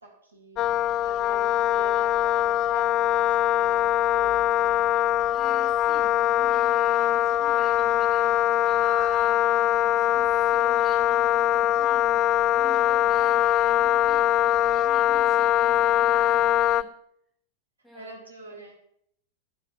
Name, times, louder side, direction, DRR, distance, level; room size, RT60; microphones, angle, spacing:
voice 1, 0.0-0.6 1.0-4.9 17.9-18.8, right 3 dB, 75° right, 2 dB, 2.5 m, -45 dB
Wind instrument woodwind instrument, 0.6-16.8, left 12 dB, 35° left, 0.4 m, -22 dB
voice 2, 5.3-16.9 17.8-18.1 18.5-18.6, equal, 5° left, -2 dB, 3.6 m, -46 dB
11.5 x 5.9 x 6.1 m, 0.71 s
figure-of-eight pair, 90°, 0 cm